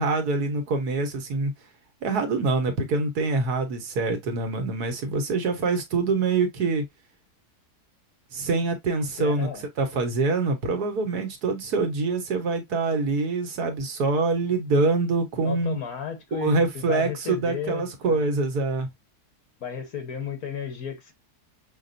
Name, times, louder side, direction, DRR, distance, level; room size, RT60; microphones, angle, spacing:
voice 1, 0.0-1.5 2.0-6.8 8.3-9.5 9.8-15.8 16.3-18.9, right 3 dB, 75° right, 1.6 m, -25 dB
voice 2, 9.2-9.7 15.4-18.2 19.6-21.1, left 7 dB, 65° left, 1.6 m, -33 dB
5.9 x 2.5 x 2.6 m
omnidirectional pair, 1.7 m